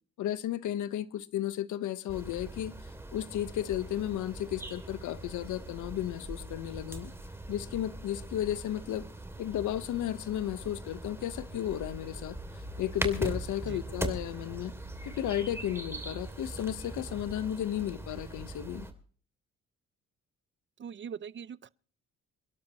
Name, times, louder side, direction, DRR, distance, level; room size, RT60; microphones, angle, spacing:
voice 1, 0.2-2.7 3.1-7.1 7.5-9.0 9.4-12.4 12.8-14.7 15.0-18.9, left 12 dB, 85° left, 1.2 m, -33 dB
sound 1, 2.1-18.9, right 2 dB, 10° right, 2.8 m, -41 dB
voice 2, 20.8-21.7, right 7 dB, 40° right, 0.7 m, -42 dB
28.0 x 12.0 x 3.1 m
cardioid pair, 90°, 30 cm